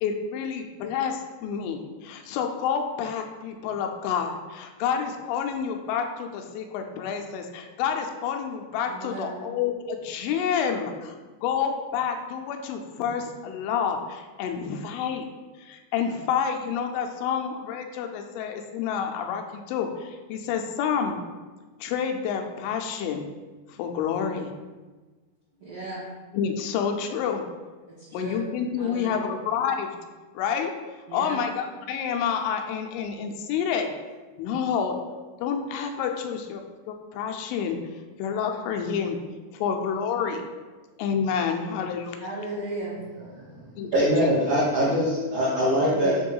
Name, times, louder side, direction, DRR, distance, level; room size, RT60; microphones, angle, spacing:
voice 1, 0.0-11.2 11.4-15.2 15.6-21.2 21.8-23.3 23.8-24.5 26.3-27.4 28.1-30.0 30.3-30.7 31.1-33.9 34.4-35.0 35.4-37.8 38.2-39.2 39.5-40.4 41.0-42.2 43.8-44.1, left 7 dB, 85° left, 4 dB, 3.0 m, -28 dB
voice 2, 8.9-9.4 25.6-26.0 28.0-28.4 28.8-29.3 31.1-31.4 42.2-43.0 45.8-46.2, right 2 dB, 60° right, -11 dB, 1.4 m, -35 dB
voice 3, 43.3-46.2, equal, 85° right, -7 dB, 1.7 m, -23 dB
7.9 x 3.0 x 5.4 m, 1.3 s
omnidirectional pair, 5.6 m